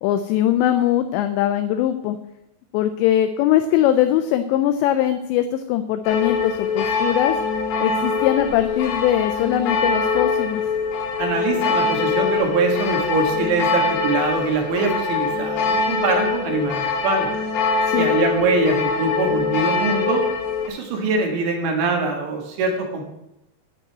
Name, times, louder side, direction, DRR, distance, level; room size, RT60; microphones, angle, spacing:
voice 1, 0.0-2.2 2.7-7.3 7.8-10.6 17.9-18.1, left 11 dB, 90° left, 9 dB, 2.5 m, -21 dB
sound 1, 6.1-20.7, left 4 dB, 70° left, 3.3 m, -23 dB
voice 2, 11.2-17.3 17.9-20.3 20.7-23.0, right 3 dB, 70° right, 2 dB, 3.7 m, -23 dB
9.9 x 5.4 x 8.4 m, 0.86 s
omnidirectional pair, 5.7 m